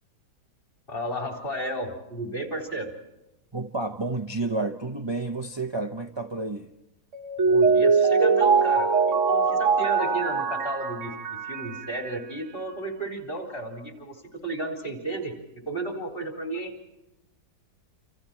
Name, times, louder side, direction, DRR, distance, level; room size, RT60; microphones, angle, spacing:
voice 1, 0.9-2.9 7.4-15.3 15.7-16.7, right 1 dB, 30° left, 4.3 m, -33 dB
voice 2, 3.5-6.7, right 3 dB, 35° right, 0.4 m, -30 dB
Mallet percussion, 7.1-12.1, right 5 dB, 50° right, 1.2 m, -22 dB
29.0 x 27.0 x 4.5 m
omnidirectional pair, 1.8 m